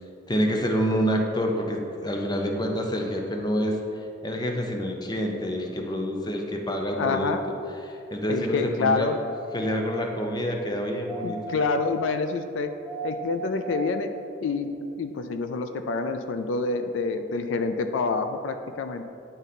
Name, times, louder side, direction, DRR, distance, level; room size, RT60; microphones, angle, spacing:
voice 1, 0.3-3.8 4.2-7.3 7.8-9.1 9.5-11.4, equal, 20° left, 2 dB, 0.6 m, -27 dB
voice 2, 7.0-7.4 8.3-9.2 11.2-12.7 13.0-14.1 14.4-14.7 15.0-19.0, left 4 dB, 85° left, 8 dB, 0.4 m, -27 dB
sound 1, 9.1-10.1 11.1-12.2 12.8-14.1 14.7-14.8, right 3 dB, 50° left, 1.3 m, -37 dB
9.0 x 3.9 x 4.1 m, 2.6 s
head